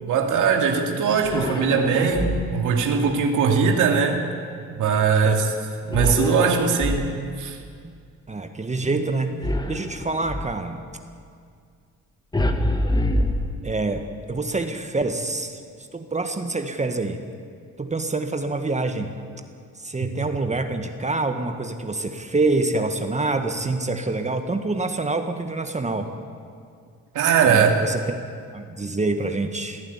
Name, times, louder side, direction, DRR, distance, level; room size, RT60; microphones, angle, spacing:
voice 1, 0.0-4.2 4.7-5.5 5.8-7.0 7.4-7.6 20.0-20.1 27.1-27.7, right 6 dB, 80° right, 2 dB, 2.8 m, -20 dB
sound 1, 1.2-2.7 5.9-7.5 9.4-10.6 12.3-14.0, left 1 dB, 15° left, 1.6 m, -26 dB
voice 2, 8.3-10.8 13.6-15.6 15.9-17.2 17.8-19.1 19.8-26.1 27.4-28.0 28.5-29.8, right 3 dB, 25° right, 6 dB, 1.7 m, -26 dB
21.5 x 14.0 x 9.9 m, 2.2 s
cardioid pair, 90°, 30 cm